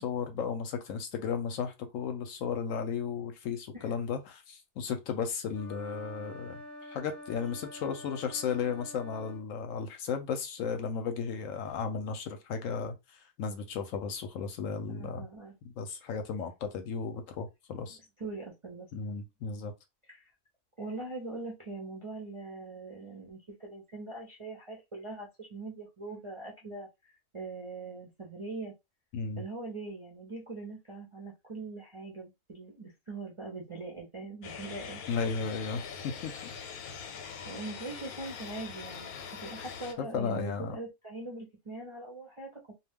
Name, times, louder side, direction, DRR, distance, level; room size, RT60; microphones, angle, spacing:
voice 1, 0.0-6.6 6.9-15.3 15.6-18.0 18.9-19.7 29.1-29.4 35.1-36.3 40.0-40.8, left 6 dB, 70° left, 0.9 m, -34 dB
sound 1, 5.5-9.5, left 1 dB, 15° left, 0.9 m, -47 dB
voice 2, 14.9-15.5 18.2-18.9 20.1-20.3 20.8-28.7 29.4-35.0 37.4-39.1 39.4-42.7, right 3 dB, 40° right, 0.4 m, -42 dB
sound 2, 34.4-39.9, left 6 dB, 90° left, 1.1 m, -43 dB
2.3 x 2.2 x 3.4 m
omnidirectional pair, 1.5 m